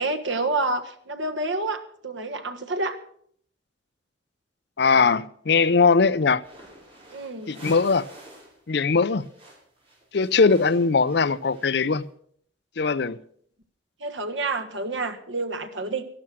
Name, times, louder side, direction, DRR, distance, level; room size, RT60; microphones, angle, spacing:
voice 1, 0.0-3.0 7.1-7.6 14.0-16.1, right 2 dB, 85° right, 1.5 m, -28 dB
voice 2, 4.8-6.4 7.5-8.1 8.7-9.3 10.1-12.1 12.8-13.2, left 4 dB, 60° left, 0.5 m, -20 dB
sound 1, 6.4-8.6 8.8-12.0, right 1 dB, 30° right, 6.2 m, -47 dB
13.5 x 12.0 x 6.2 m
head